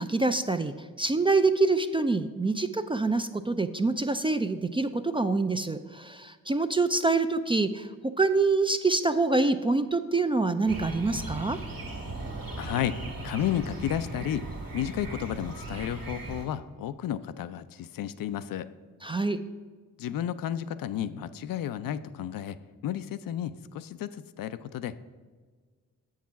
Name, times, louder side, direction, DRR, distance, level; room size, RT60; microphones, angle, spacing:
voice 1, 0.0-7.9 8.2-11.6 19.0-19.4, right 3 dB, 15° right, 9 dB, 0.3 m, -26 dB
sound 1, 10.7-16.5, right 2 dB, 65° right, 1.8 m, -38 dB
voice 2, 12.6-14.5 14.7-18.7 20.0-22.6 22.8-25.0, left 10 dB, 60° left, 12 dB, 0.5 m, -32 dB
7.2 x 4.8 x 5.7 m, 1.5 s
supercardioid pair, 45°, 38 cm